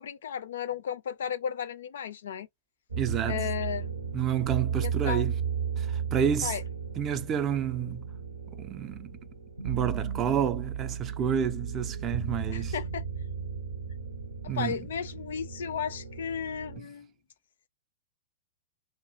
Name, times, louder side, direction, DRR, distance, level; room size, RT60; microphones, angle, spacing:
voice 1, 0.0-2.5 3.3-3.9 4.8-5.4 6.4-6.6 12.5-13.0 14.4-17.1, left 8 dB, 65° left, 0.4 m, -34 dB
sound 1, 2.9-16.8, right 7 dB, 75° right, 0.6 m, -35 dB
voice 2, 3.0-3.4 4.1-5.3 5.8-6.5 7.0-8.1 8.6-9.1 9.6-12.7 14.5-14.8, right 8 dB, 30° right, 0.4 m, -29 dB
2.3 x 2.0 x 2.6 m
figure-of-eight pair, 100°, 0 cm